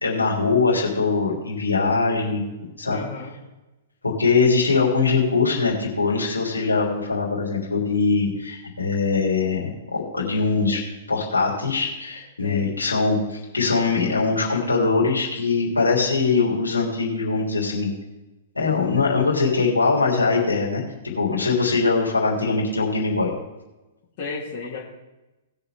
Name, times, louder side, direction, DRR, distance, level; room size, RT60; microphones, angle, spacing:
voice 1, 0.0-3.0 4.0-10.8 11.1-17.9 18.6-20.8 21.2-23.3, left 4 dB, 80° left, -3 dB, 3.4 m, -22 dB
voice 2, 2.9-3.3 12.4-12.8 24.2-24.8, left 4 dB, 40° left, -4 dB, 2.6 m, -33 dB
19.5 x 6.8 x 3.6 m, 1.0 s
figure-of-eight pair, 110°, 0 cm